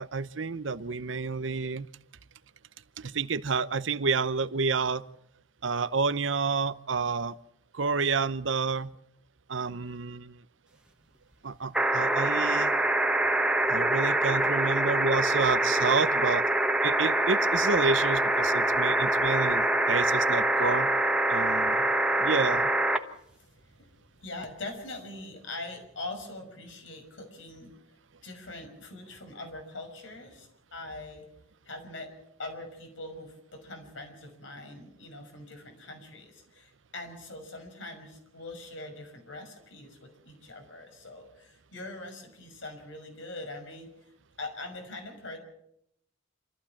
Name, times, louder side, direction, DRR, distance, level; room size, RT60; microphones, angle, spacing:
voice 1, 0.0-1.9 3.0-5.0 5.6-7.4 7.7-8.9 9.5-10.4 11.4-12.7 13.7-16.4 16.8-20.9 21.3-21.8 22.2-22.7, right 4 dB, 80° right, 15 dB, 0.8 m, -29 dB
sound 1, 11.7-23.0 24.4-24.5, right 1 dB, 5° right, 1.2 m, -25 dB
voice 2, 23.4-23.9 24.2-27.7 28.2-31.3 31.7-43.9 44.4-45.4, left 2 dB, 80° left, 4 dB, 6.0 m, -42 dB
27.5 x 14.5 x 7.2 m, 0.76 s
head